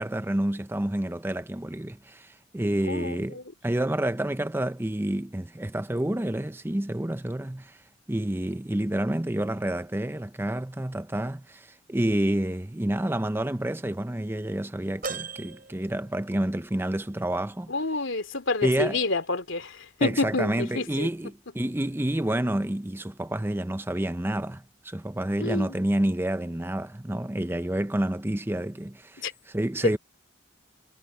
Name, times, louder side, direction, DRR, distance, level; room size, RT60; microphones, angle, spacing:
voice 1, 0.0-7.8 8.1-17.7 18.6-19.0 20.0-30.0, right 1 dB, 10° right, 0.6 m, -29 dB
voice 2, 2.8-3.4 17.7-21.1 25.4-25.8 29.2-29.3, left 3 dB, 80° left, 2.9 m, -28 dB
sound 1, 15.0-16.7 17.1-17.2 18.4-18.5, right 4 dB, 45° right, 6.9 m, -39 dB
head